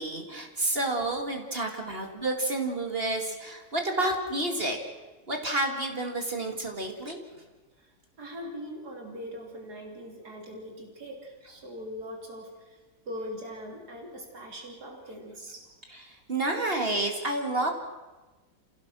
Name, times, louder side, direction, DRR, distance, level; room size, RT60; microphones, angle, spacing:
voice 1, 0.0-4.8 5.3-7.2 15.9-17.7, right 2 dB, 35° right, 3 dB, 2.3 m, -30 dB
voice 2, 1.6-1.9 7.8-12.8 13.1-15.7, equal, 70° right, 1 dB, 3.6 m, -41 dB
27.5 x 17.0 x 6.2 m, 1.2 s
omnidirectional pair, 1.8 m